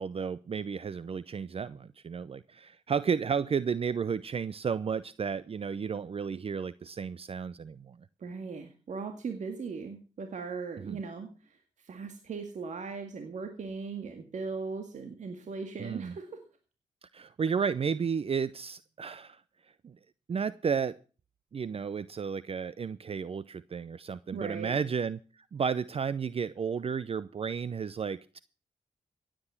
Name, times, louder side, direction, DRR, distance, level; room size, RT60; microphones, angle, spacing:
voice 1, 0.0-8.0 10.8-11.0 15.8-16.1 17.1-19.4 19.8-20.0 20.3-21.0 21.5-28.4, right 6 dB, 45° right, 17 dB, 0.6 m, -33 dB
voice 2, 8.2-16.4 24.3-24.8, right 4 dB, 65° right, 5 dB, 2.0 m, -39 dB
16.5 x 9.1 x 5.8 m, 0.36 s
supercardioid pair, 50°, 13 cm